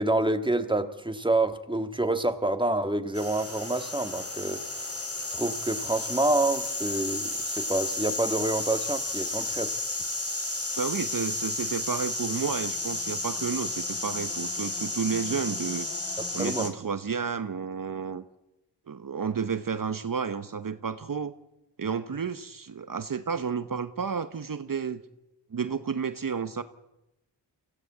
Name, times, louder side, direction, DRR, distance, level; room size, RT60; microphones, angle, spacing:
voice 1, 0.0-4.8 5.3-9.7 16.4-16.7, right 2 dB, 10° right, 1.7 m, -27 dB
sound 1, 3.1-16.7, left 2 dB, 35° left, 3.9 m, -32 dB
voice 2, 10.8-15.9 16.3-18.2 18.9-21.3 21.8-25.0 25.5-26.6, right 6 dB, 50° right, 1.0 m, -31 dB
24.0 x 15.5 x 8.6 m
cardioid pair, 55°, 41 cm